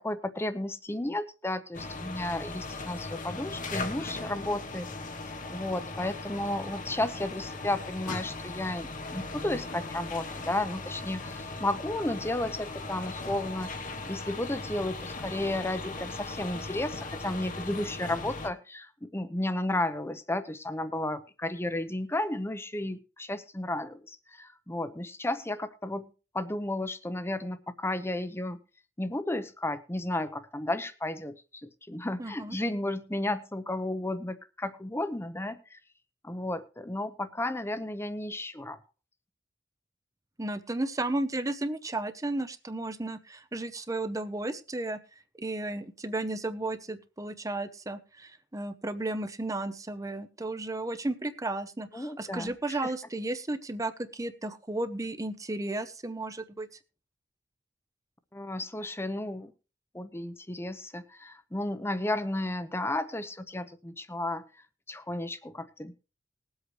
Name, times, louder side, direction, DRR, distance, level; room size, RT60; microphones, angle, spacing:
voice 1, 0.0-4.9 5.5-26.1 26.3-28.6 29.0-31.3 31.6-35.8 36.2-38.8 51.9-52.9 58.3-59.5 59.9-64.4 64.9-65.9, left 1 dB, 15° left, 12 dB, 0.8 m, -33 dB
sound 1, 1.7-18.5, left 3 dB, 45° left, 1.1 m, -38 dB
voice 2, 32.2-32.6 40.4-45.0 45.4-56.7, right 2 dB, 20° right, 12 dB, 0.8 m, -34 dB
20.0 x 8.0 x 3.2 m, 0.32 s
head